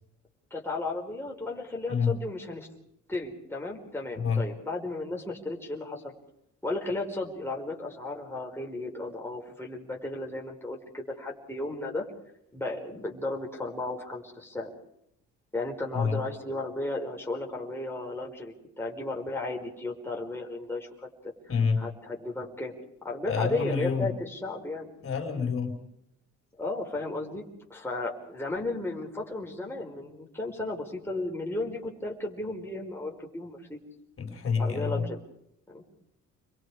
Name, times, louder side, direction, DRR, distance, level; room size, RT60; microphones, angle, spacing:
voice 1, 0.5-2.7 3.1-6.1 6.6-12.1 12.5-14.7 15.5-21.1 21.8-22.7 23.0-24.9 26.6-27.4 27.7-33.8 34.6-35.2 35.7-35.8, left 2 dB, 10° left, -1 dB, 4.9 m, -34 dB
voice 2, 21.5-21.8 23.3-24.1 25.0-25.8 34.2-35.0, left 5 dB, 45° left, 3 dB, 4.5 m, -27 dB
29.0 x 22.5 x 5.0 m, 0.77 s
cardioid pair, 90°, 30 cm